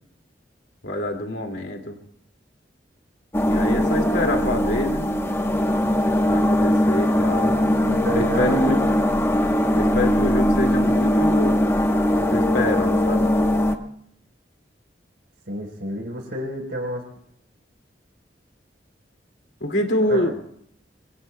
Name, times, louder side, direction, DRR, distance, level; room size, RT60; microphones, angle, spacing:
voice 1, 0.8-2.0 3.4-5.1 6.2-7.6 8.1-8.8 9.7-11.7 12.2-13.3 19.6-20.3, left 1 dB, 80° left, 3 dB, 2.3 m, -26 dB
sound 1, 3.3-13.8, left 1 dB, 15° left, 0.9 m, -20 dB
voice 2, 7.6-8.7 15.5-17.1 20.1-20.3, equal, 85° right, 1 dB, 3.9 m, -30 dB
25.0 x 25.0 x 2.2 m, 0.67 s
head